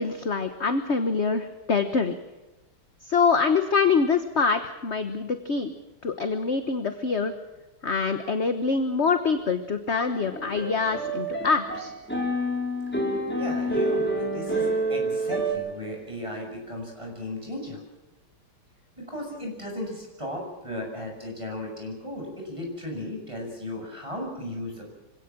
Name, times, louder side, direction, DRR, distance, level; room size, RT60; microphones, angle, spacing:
voice 1, 0.0-2.1 3.1-5.7 6.0-7.3 7.8-11.9, left 5 dB, 40° left, 8 dB, 1.2 m, -25 dB
sound 1, 10.1-15.5, right 1 dB, 5° left, 4.6 m, -28 dB
voice 2, 13.3-17.8 19.0-24.9, left 1 dB, 15° right, 1 dB, 7.6 m, -36 dB
26.0 x 17.5 x 7.5 m, 1.0 s
omnidirectional pair, 2.4 m